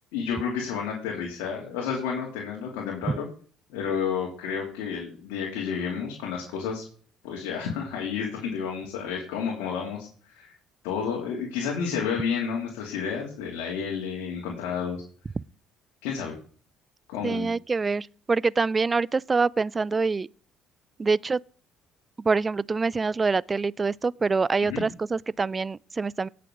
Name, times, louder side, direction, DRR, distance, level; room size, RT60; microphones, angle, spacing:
voice 1, 0.1-3.3 3.7-6.8 7.2-10.5 10.8-15.0 16.0-16.3 17.1-17.5 24.6-24.8, left 6 dB, 90° left, 2.8 m, -31 dB
voice 2, 17.2-20.3 21.0-21.4 22.2-26.3, right 4 dB, 25° right, 0.4 m, -25 dB
17.5 x 6.8 x 3.8 m
supercardioid pair, 85°, 0 cm